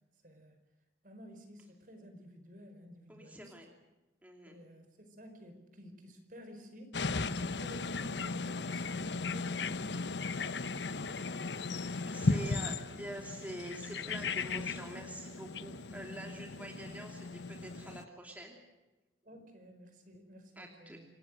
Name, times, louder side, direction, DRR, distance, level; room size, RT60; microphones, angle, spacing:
voice 1, 0.2-0.5 1.0-3.5 4.4-7.0 7.4-10.1 14.0-14.1 15.7-15.9 16.5-16.7 19.2-21.1, equal, 50° right, 6 dB, 5.0 m, -53 dB
voice 2, 3.1-3.7 4.2-4.6 8.2-8.4 11.9-18.6 20.6-21.0, right 1 dB, 10° right, 1 dB, 2.7 m, -46 dB
sound 1, 6.9-18.0, left 3 dB, 85° left, 0.9 m, -36 dB
27.0 x 18.5 x 7.7 m, 1.1 s
head